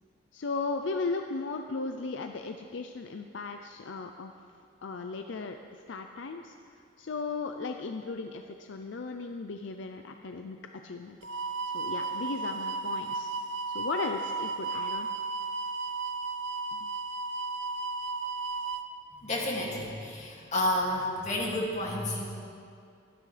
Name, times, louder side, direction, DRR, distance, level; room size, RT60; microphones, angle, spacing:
voice 1, 0.3-4.3 4.8-6.5 7.0-11.2 11.6-13.3 13.7-15.1 16.8-16.9, left 3 dB, 75° left, 5 dB, 0.5 m, -36 dB
sound 1, 11.2-18.8, right 3 dB, 75° right, 0.6 m, -34 dB
voice 2, 19.2-22.3, left 1 dB, 40° left, -3 dB, 2.4 m, -30 dB
24.0 x 10.0 x 3.4 m, 2.4 s
head